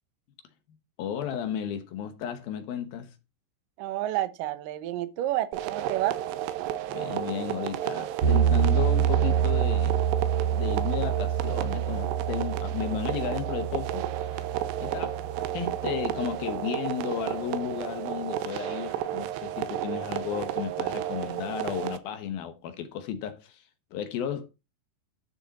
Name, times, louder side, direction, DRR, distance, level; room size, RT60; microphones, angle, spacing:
voice 1, 1.0-3.1 6.9-10.0 10.5-14.3 14.8-23.6 23.9-24.5, left 9 dB, 70° left, 2.7 m, -34 dB
voice 2, 3.8-6.2, right 14 dB, 70° right, 2.2 m, -29 dB
sound 1, 5.5-22.0, right 12 dB, 90° right, 2.9 m, -32 dB
sound 2, 8.2-16.4, right 9 dB, 50° right, 2.6 m, -27 dB
12.5 x 6.5 x 4.1 m
omnidirectional pair, 4.8 m